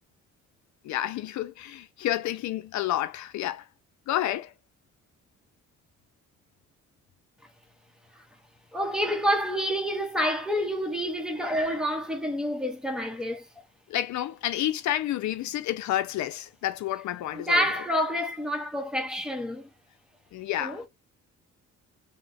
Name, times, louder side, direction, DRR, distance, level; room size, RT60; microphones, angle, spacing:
voice 1, 0.8-3.6 4.1-4.5 13.9-17.6 20.3-20.8, left 13 dB, 70° left, 0.5 m, -30 dB
voice 2, 8.7-13.5 17.3-19.7 20.6-20.8, equal, ahead, 0.9 m, -28 dB
2.4 x 2.1 x 3.8 m
cardioid pair, 90°, 30 cm